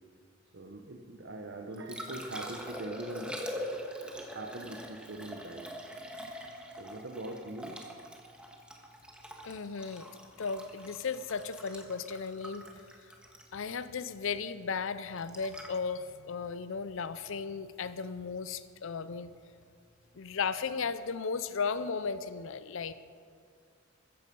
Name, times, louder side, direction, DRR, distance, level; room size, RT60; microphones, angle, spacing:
voice 1, 0.5-5.9 6.8-7.8, right 2 dB, 60° right, 2 dB, 1.1 m, -42 dB
Liquid, 1.5-17.6 20.4-20.5, equal, 5° right, 1.7 m, -44 dB
voice 2, 9.4-10.1 10.4-12.6 13.5-19.3 20.2-22.9, left 5 dB, 70° left, 13 dB, 0.6 m, -35 dB
14.5 x 14.5 x 5.4 m, 2.1 s
head